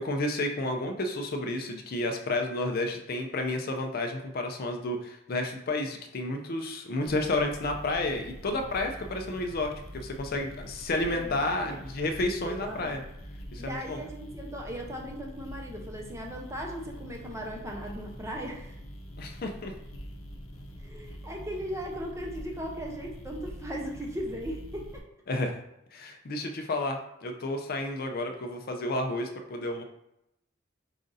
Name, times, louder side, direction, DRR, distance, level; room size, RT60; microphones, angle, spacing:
voice 1, 0.0-13.0 13.5-14.0 19.2-19.7 25.3-25.5 25.9-29.8, left 2 dB, 45° left, 4 dB, 0.4 m, -31 dB
sound 1, 7.1-25.0, equal, 80° left, 0.7 m, -44 dB
voice 2, 11.1-11.8 12.5-13.0 13.6-18.7 20.8-25.0, equal, 15° right, 0 dB, 0.6 m, -38 dB
4.9 x 2.6 x 3.9 m, 0.84 s
head